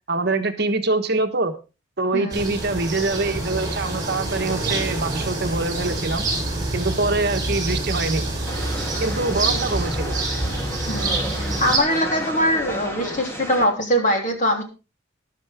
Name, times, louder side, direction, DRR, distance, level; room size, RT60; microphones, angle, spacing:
voice 1, 0.1-1.5 2.0-6.3 6.7-8.3 9.0-10.2, right 3 dB, 55° right, 7 dB, 1.4 m, -24 dB
voice 2, 2.1-2.6 10.9-14.6, equal, 40° left, 3 dB, 3.2 m, -22 dB
sound 1, 2.3-11.8, right 2 dB, 20° right, 6.2 m, -26 dB
sound 2, 8.5-13.7, equal, 10° left, 2.8 m, -32 dB
14.0 x 11.5 x 3.6 m, 0.30 s
head